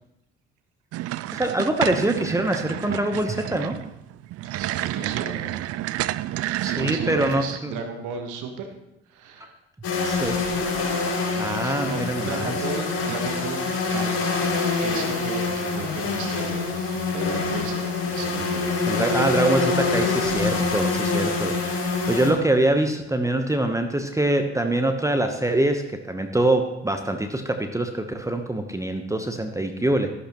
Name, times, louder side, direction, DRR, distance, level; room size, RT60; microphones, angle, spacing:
sound 1, 0.9-7.6, right 15 dB, 45° right, 0.5 m, -30 dB
voice 1, 1.3-3.8 6.6-7.7 10.0-10.4 11.4-12.5 18.9-30.1, right 1 dB, 10° right, 5 dB, 1.0 m, -24 dB
voice 2, 2.9-3.4 4.4-5.5 6.6-8.7 9.1-9.5 11.6-14.4 14.8-18.7, right 5 dB, 65° right, 5 dB, 1.5 m, -35 dB
sound 2, 9.8-22.3, left 4 dB, 45° left, 4.6 m, -25 dB
12.5 x 11.5 x 3.1 m, 0.87 s
hypercardioid pair, 50°, 33 cm